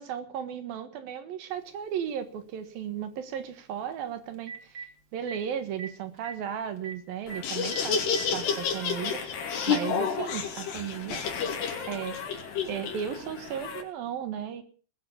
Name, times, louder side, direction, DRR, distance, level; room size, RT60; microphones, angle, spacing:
voice 1, 0.0-4.9 5.1-8.0 8.3-11.3 11.9-12.2 12.7-14.6, right 9 dB, 65° right, 10 dB, 3.1 m, -35 dB
Telephone, 1.7-1.8 3.9-4.0 4.3-4.9 5.3-5.4 5.8-5.9 6.2-6.3 6.8-6.9 7.3-7.4 7.7-8.3 9.3-9.4 10.8-10.9, right 5 dB, 45° right, 1.6 m, -40 dB
Laughter, 7.3-13.8, left 6 dB, 85° left, 4.9 m, -30 dB
20.5 x 9.8 x 7.0 m, 0.43 s
omnidirectional pair, 4.7 m